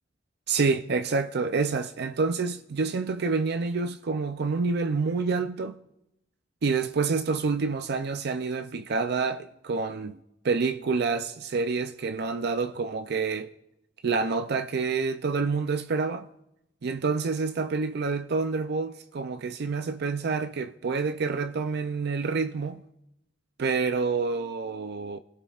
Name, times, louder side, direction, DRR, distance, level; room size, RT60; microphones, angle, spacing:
voice 1, 0.5-5.8 6.6-10.2 10.4-13.5 14.0-16.3 16.8-22.8 23.6-25.2, right 4 dB, 60° right, 0.5 m, -28 dB
28.0 x 16.5 x 2.4 m
head